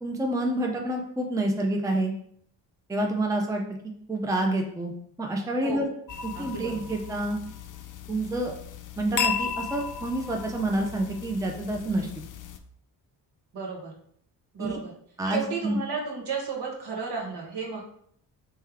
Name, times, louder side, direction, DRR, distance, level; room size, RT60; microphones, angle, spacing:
voice 1, 0.0-2.1 2.9-3.6 4.1-4.9 5.2-5.9 6.2-7.4 8.1-8.5 9.0-12.1 14.6-14.8 15.2-15.8, right 1 dB, 5° right, 2 dB, 0.6 m, -28 dB
sound 1, 6.1-12.6, left 7 dB, 45° left, 0.5 m, -35 dB
voice 2, 6.3-6.7 13.5-13.9 14.5-14.9 15.2-17.8, right 4 dB, 60° right, -1 dB, 1.4 m, -33 dB
3.3 x 3.3 x 3.4 m, 0.66 s
hypercardioid pair, 45°, 45 cm